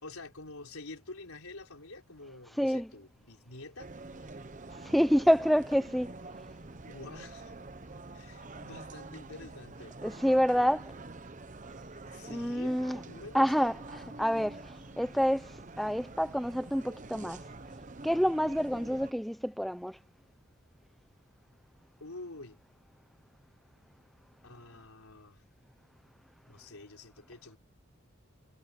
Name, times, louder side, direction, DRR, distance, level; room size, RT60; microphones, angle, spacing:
voice 1, 0.0-3.9 6.9-7.5 8.1-10.0 12.0-12.8 13.0-13.7 22.0-22.6 24.4-25.4 26.5-27.6, left 2 dB, 85° left, 4.1 m, -47 dB
voice 2, 2.6-2.9 4.8-6.2 10.0-11.0 12.3-13.0 13.3-17.4 18.0-20.0, equal, ahead, 0.9 m, -28 dB
sound 1, 3.8-19.1, right 2 dB, 35° right, 0.9 m, -47 dB
head